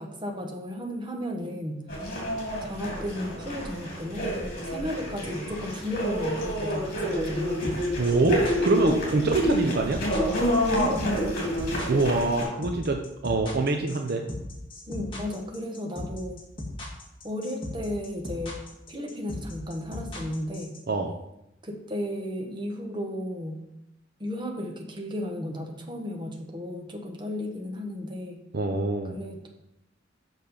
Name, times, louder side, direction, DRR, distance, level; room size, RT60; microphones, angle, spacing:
voice 1, 0.0-1.9 2.6-4.3 4.7-7.8 10.7-11.6 14.9-16.4 17.2-18.6 18.9-20.8 21.6-23.6 24.2-28.4 29.1-29.5, left 1 dB, 25° right, 2 dB, 1.2 m, -34 dB
sound 1, 1.9-12.4, equal, 50° left, 3.1 m, -29 dB
sound 2, 7.6-20.8, left 1 dB, 25° left, 1.8 m, -37 dB
voice 2, 8.0-10.0 11.9-14.2 20.9-21.1 28.5-29.1, right 2 dB, 55° right, 4 dB, 0.7 m, -25 dB
6.8 x 6.1 x 5.4 m, 0.85 s
head